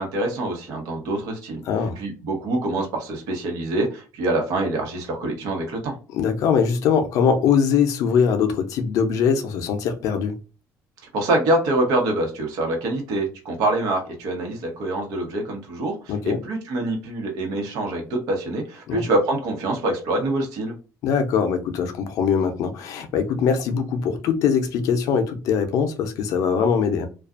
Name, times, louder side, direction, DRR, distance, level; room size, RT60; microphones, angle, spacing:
voice 1, 0.0-1.6 2.0-6.0 11.1-20.7, right 2 dB, 90° right, 1.1 m, -25 dB
voice 2, 1.6-2.0 6.1-10.4 16.1-16.4 18.9-19.0 21.0-27.1, left 6 dB, 65° left, 0.5 m, -22 dB
2.5 x 2.3 x 2.4 m
cardioid pair, 165°, 6 cm